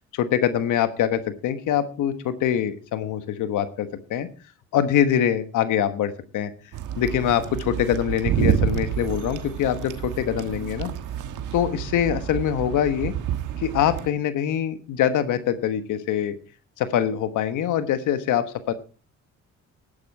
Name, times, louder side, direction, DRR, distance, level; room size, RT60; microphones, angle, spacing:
voice 1, 0.1-4.3 4.7-6.5 7.0-10.9 11.5-13.1 13.6-16.3 16.8-18.7, left 9 dB, 85° left, 10 dB, 1.3 m, -24 dB
sound 1, 6.7-14.1, right 9 dB, 90° right, 1.4 m, -28 dB
11.5 x 10.5 x 4.7 m, 0.38 s
cardioid pair, 90°, 30 cm